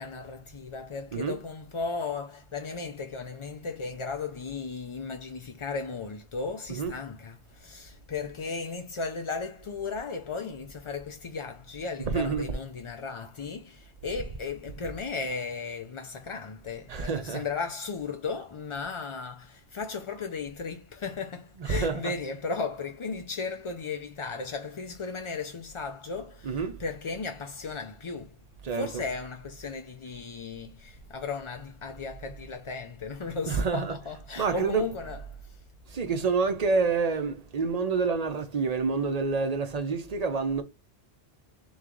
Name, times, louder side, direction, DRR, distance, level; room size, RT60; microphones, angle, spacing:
voice 1, 0.0-28.4 28.7-35.4, left 4 dB, 55° left, 0.3 m, -35 dB
voice 2, 6.7-7.0 12.1-12.6 16.9-17.4 21.6-22.2 26.4-26.8 28.6-29.1 33.5-34.0 34.4-34.9 35.9-40.6, right 4 dB, 45° right, 0.6 m, -28 dB
3.4 x 3.1 x 3.7 m
omnidirectional pair, 1.1 m